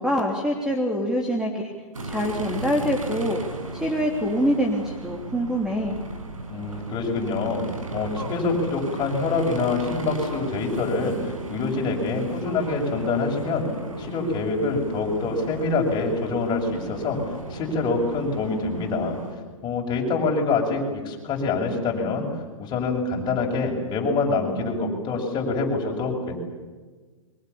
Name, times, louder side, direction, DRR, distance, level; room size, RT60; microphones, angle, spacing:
voice 1, 0.0-1.7 2.0-3.4 3.7-6.0, equal, 5° right, 0 dB, 3.2 m, -25 dB
sound 1, 1.9-19.3, right 2 dB, 90° right, 5.8 m, -35 dB
voice 2, 6.5-7.6 7.9-13.7 14.0-17.2 17.5-19.2 19.6-22.3 22.6-26.4, left 3 dB, 25° left, 1 dB, 7.3 m, -25 dB
29.5 x 24.5 x 7.1 m, 1.4 s
hypercardioid pair, 120°, 17 cm